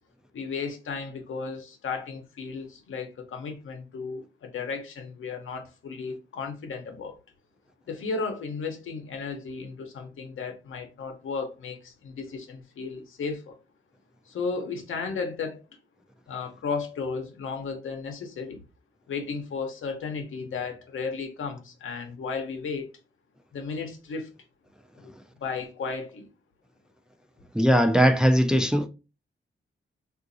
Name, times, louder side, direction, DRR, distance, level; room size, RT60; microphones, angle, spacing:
voice 1, 0.3-7.2 7.9-13.6 14.3-15.6 16.3-18.6 19.1-22.9 23.5-24.3 25.0-25.1 25.4-26.3, left 4 dB, 80° left, 0.8 m, -34 dB
voice 2, 27.5-28.9, equal, 5° right, 0.4 m, -20 dB
3.8 x 2.5 x 2.6 m
cardioid pair, 85°, 20 cm